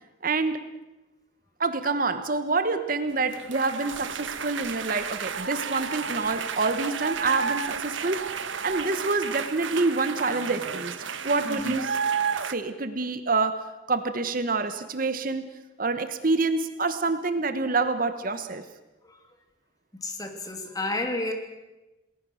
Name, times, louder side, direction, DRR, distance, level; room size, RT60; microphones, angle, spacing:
voice 1, 0.2-0.7 1.6-8.3 8.6-11.0 11.2-12.0 12.5-15.5 15.8-18.6, right 3 dB, 45° right, 10 dB, 1.2 m, -27 dB
sound 1, 3.3-12.5, right 6 dB, 75° right, 1.4 m, -32 dB
voice 2, 11.4-11.8 20.0-21.3, left 2 dB, 20° left, 4 dB, 3.0 m, -31 dB
28.5 x 20.0 x 6.4 m, 1.0 s
head